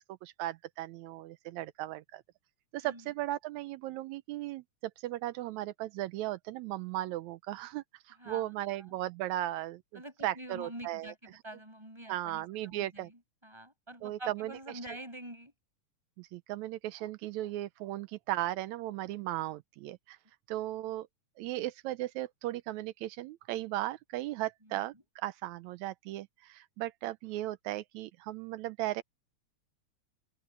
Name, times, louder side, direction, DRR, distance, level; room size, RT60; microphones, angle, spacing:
voice 1, 0.0-2.2 2.7-9.8 10.2-11.1 12.1-13.1 14.0-14.5 16.2-20.2 20.5-21.1 21.4-29.0, right 15 dB, 85° right, 2.0 m, -36 dB
voice 2, 8.2-9.0 9.9-15.5 24.6-25.0, right 1 dB, 10° right, 5.5 m, -47 dB
open air
omnidirectional pair, 3.3 m